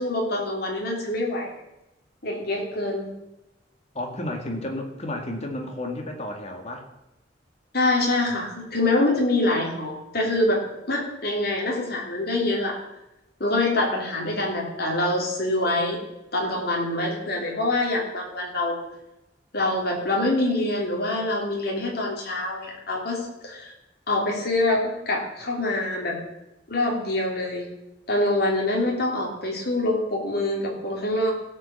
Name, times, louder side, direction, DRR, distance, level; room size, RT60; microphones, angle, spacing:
voice 1, 0.0-1.5 2.2-3.1 7.7-10.6 10.9-12.8 13.4-16.0 16.3-18.8 19.5-23.7 24.1-26.2 26.7-27.7 28.1-31.3, left 2 dB, 60° left, 0 dB, 3.3 m, -25 dB
voice 2, 3.9-6.9, left 1 dB, 35° left, 3 dB, 2.0 m, -32 dB
16.0 x 5.5 x 7.1 m, 0.92 s
head